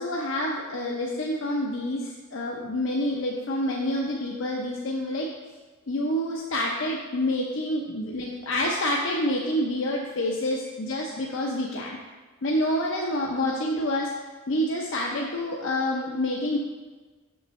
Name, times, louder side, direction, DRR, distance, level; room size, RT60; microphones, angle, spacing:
voice 1, 0.0-5.3 5.9-12.0 12.4-14.1 14.5-16.6, left 1 dB, 65° left, -2 dB, 0.6 m, -27 dB
6.9 x 6.4 x 3.1 m, 1.3 s
head